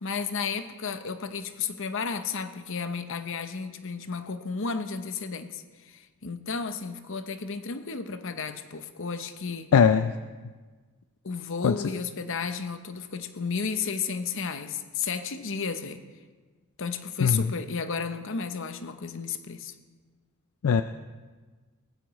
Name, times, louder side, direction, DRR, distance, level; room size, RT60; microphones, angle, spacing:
voice 1, 0.0-9.7 11.2-16.0 16.8-19.7, left 5 dB, 60° left, 10 dB, 0.8 m, -33 dB
voice 2, 9.7-10.1 11.6-11.7 17.2-17.5 20.6-20.8, left 6 dB, 75° left, 11 dB, 0.4 m, -20 dB
18.5 x 15.0 x 3.1 m, 1.4 s
head